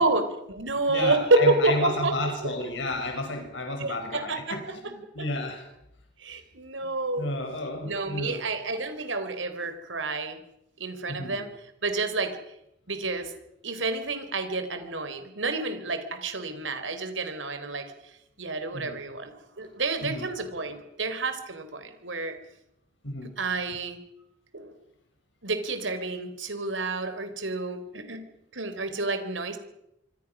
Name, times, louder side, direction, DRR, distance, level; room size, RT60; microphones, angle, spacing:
voice 1, 0.0-2.5 3.8-5.3 6.2-7.3 7.8-10.4 10.8-11.5 11.8-12.4 12.9-13.3 13.6-22.4 23.4-24.0 24.5-24.7 25.4-28.2 28.5-29.6, right 2 dB, 85° right, 9 dB, 3.8 m, -29 dB
voice 2, 0.9-5.7 6.3-6.4 6.8-6.9 7.2-8.4 11.1-11.4 18.7-19.0 20.1-20.3 23.0-23.3, left 1 dB, 75° left, 3 dB, 6.3 m, -32 dB
25.5 x 25.5 x 6.2 m, 0.83 s
head